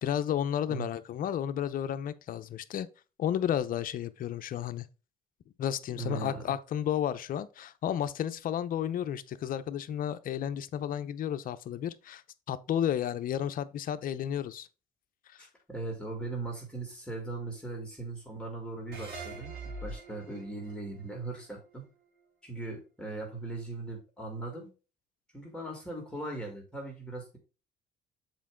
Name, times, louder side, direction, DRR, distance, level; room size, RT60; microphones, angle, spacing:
voice 1, 0.0-2.9 3.2-4.9 5.6-12.2 12.5-14.7 15.3-15.4, left 10 dB, 55° left, 0.7 m, -32 dB
voice 2, 6.0-6.4 15.4-19.5 19.8-21.9 22.4-24.7 25.3-27.4, right 2 dB, 5° left, 2.3 m, -39 dB
sound 1, 18.9-22.2, right 2 dB, 80° right, 3.2 m, -44 dB
7.3 x 4.6 x 3.7 m
cardioid pair, 110°, 17 cm